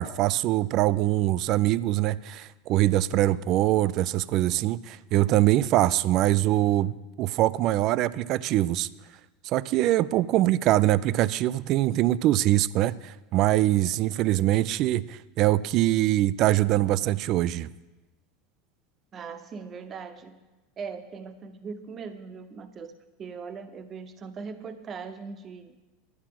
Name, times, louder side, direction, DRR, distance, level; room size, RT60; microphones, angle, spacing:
voice 1, 0.0-8.9 9.4-17.7, right 15 dB, 55° right, 19 dB, 0.4 m, -23 dB
voice 2, 19.1-20.4 20.8-22.9 23.2-25.9, right 5 dB, 35° right, 10 dB, 0.9 m, -40 dB
11.0 x 10.0 x 5.8 m, 1.1 s
hypercardioid pair, 105°, 0 cm